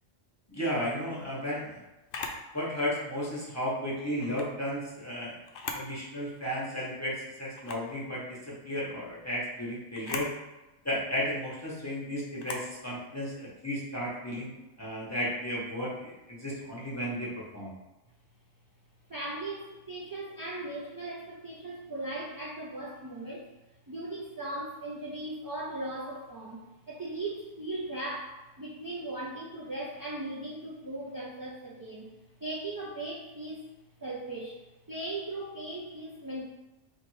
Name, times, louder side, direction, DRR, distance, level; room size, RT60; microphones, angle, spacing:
voice 1, 0.5-1.8 2.5-5.4 5.7-10.3 10.8-17.7, equal, 15° left, -6 dB, 1.1 m, -34 dB
Camera, 2.1-2.4 4.2-4.5 5.4-5.9 6.4-6.5 7.5-7.9 9.9-10.3 12.4-12.7, left 4 dB, 60° left, 0.7 m, -38 dB
voice 2, 19.1-23.5 23.9-32.1 32.4-33.7 34.0-34.6 34.9-36.4, right 2 dB, 30° right, -5 dB, 0.4 m, -38 dB
3.5 x 2.8 x 4.7 m, 1.0 s
omnidirectional pair, 1.2 m